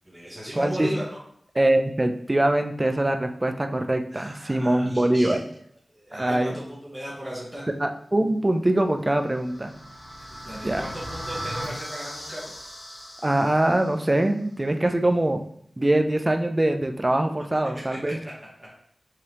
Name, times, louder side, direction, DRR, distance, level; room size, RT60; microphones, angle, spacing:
voice 1, 0.0-1.2 4.1-5.5 5.9-7.6 10.4-12.5 18.1-18.3 18.6-18.8, right 1 dB, 5° right, -7 dB, 1.0 m, -36 dB
voice 2, 0.6-0.9 1.6-5.4 6.1-6.5 7.8-9.7 10.6-10.8 13.2-15.4 15.8-18.2, right 1 dB, 25° right, 6 dB, 0.4 m, -23 dB
sound 1, 9.0-14.1, equal, 90° left, 1.3 m, -38 dB
4.9 x 2.7 x 2.9 m, 0.66 s
wide cardioid pair, 85°, 0 cm